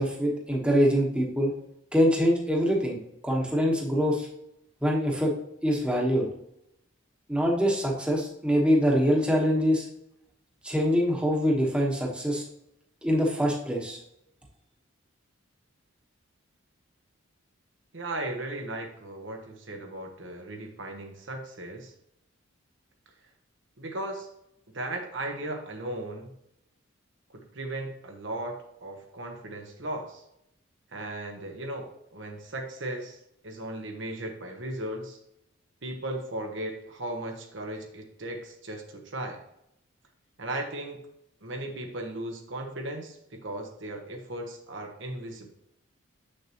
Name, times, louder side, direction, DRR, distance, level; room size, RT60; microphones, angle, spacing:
voice 1, 0.0-1.5 1.9-3.0 3.2-4.3 4.8-5.3 5.6-6.3 7.3-9.9 10.6-12.4 13.0-14.0, equal, 5° right, -2 dB, 1.2 m, -24 dB
voice 2, 17.9-21.9 23.8-24.3 24.7-26.3 27.3-30.2 30.9-35.2 35.8-39.4 40.4-41.0 41.4-45.5, right 1 dB, 60° right, 3 dB, 1.1 m, -36 dB
7.6 x 6.4 x 2.9 m, 0.79 s
head